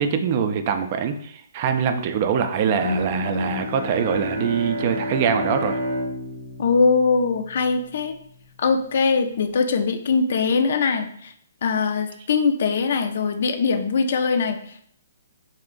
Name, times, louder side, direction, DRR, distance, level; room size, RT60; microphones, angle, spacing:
voice 1, 0.0-5.8, right 7 dB, 40° right, 7 dB, 0.3 m, -23 dB
Bowed string instrument, 2.7-7.8, left 1 dB, 85° right, 0.7 m, -29 dB
voice 2, 6.6-8.1 8.6-11.3 11.6-14.9, left 4 dB, 60° left, 7 dB, 0.4 m, -22 dB
2.4 x 2.1 x 3.7 m, 0.66 s
hypercardioid pair, 140°, 0 cm